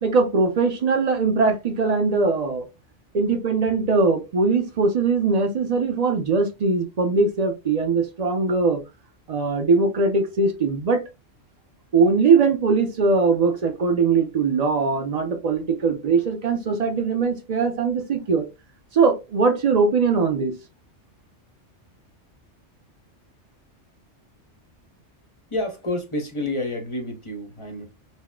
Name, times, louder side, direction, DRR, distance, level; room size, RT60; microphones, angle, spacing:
voice 1, 0.0-2.7 3.1-8.8 9.3-11.0 11.9-18.5 18.9-20.5, right 4 dB, 50° right, 0.5 m, -21 dB
voice 2, 25.5-27.8, left 1 dB, 35° left, 0.5 m, -29 dB
4.2 x 2.0 x 2.2 m
omnidirectional pair, 1.2 m